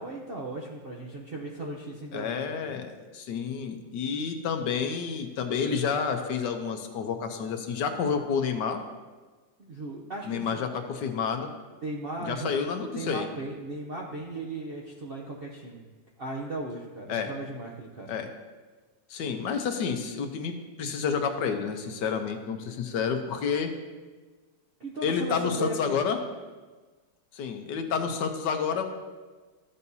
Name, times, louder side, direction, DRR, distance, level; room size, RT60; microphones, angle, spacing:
voice 1, 0.0-2.7 9.6-10.7 11.8-12.5 12.9-15.8 16.2-18.1 22.7-23.0 24.8-26.1, right 2 dB, 55° right, -2 dB, 0.6 m, -37 dB
voice 2, 2.1-8.8 10.2-11.5 12.2-13.3 17.1-17.3 18.1-18.3 19.1-23.7 25.0-26.2 27.3-28.9, left 6 dB, 70° left, 5 dB, 1.3 m, -29 dB
13.5 x 7.0 x 2.7 m, 1.3 s
omnidirectional pair, 2.0 m